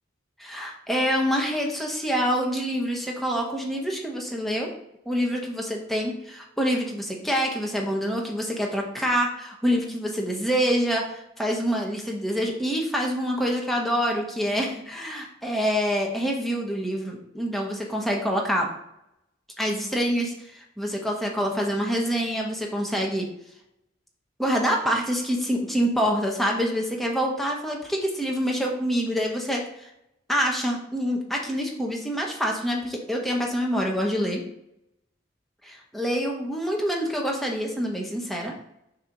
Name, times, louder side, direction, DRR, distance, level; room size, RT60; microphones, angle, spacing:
voice 1, 0.4-4.7 5.1-18.7 19.6-23.3 24.4-29.6 30.3-34.4 35.6-38.5, equal, ahead, 0 dB, 1.0 m, -26 dB
6.5 x 2.9 x 5.2 m, 0.82 s
head